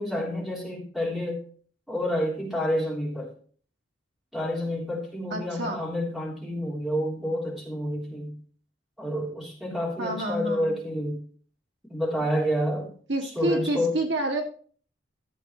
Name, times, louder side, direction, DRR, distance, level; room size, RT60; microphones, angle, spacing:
voice 1, 0.0-1.4 1.9-3.3 4.3-8.3 9.0-11.2 11.9-12.9 13.3-13.9, equal, ahead, -4 dB, 3.3 m, -29 dB
voice 2, 5.3-5.8 10.0-10.8 13.1-14.4, right 1 dB, 65° right, 2 dB, 1.9 m, -28 dB
14.5 x 7.7 x 3.1 m, 0.44 s
head